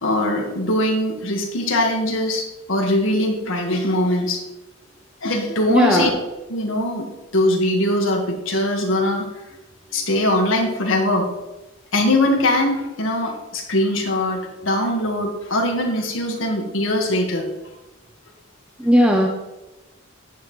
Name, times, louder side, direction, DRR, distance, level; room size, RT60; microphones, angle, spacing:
voice 1, 0.0-4.4 5.2-6.1 6.5-7.1 7.3-9.2 9.9-11.3 11.9-17.4, left 1 dB, 70° left, 1 dB, 1.6 m, -21 dB
voice 2, 5.7-6.1 18.8-19.3, equal, 5° right, 0 dB, 0.7 m, -16 dB
9.3 x 7.7 x 3.2 m, 1.0 s
head